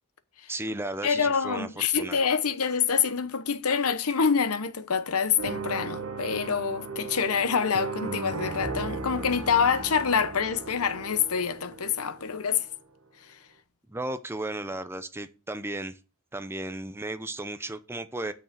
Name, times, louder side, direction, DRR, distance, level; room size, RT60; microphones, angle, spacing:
voice 1, 0.5-2.3 13.9-16.0 16.3-18.3, right 1 dB, 10° right, 0.6 m, -35 dB
voice 2, 1.0-12.7, left 6 dB, 85° left, 0.9 m, -26 dB
sound 1, 5.4-12.5, right 4 dB, 70° right, 1.5 m, -36 dB
6.6 x 6.4 x 7.6 m
head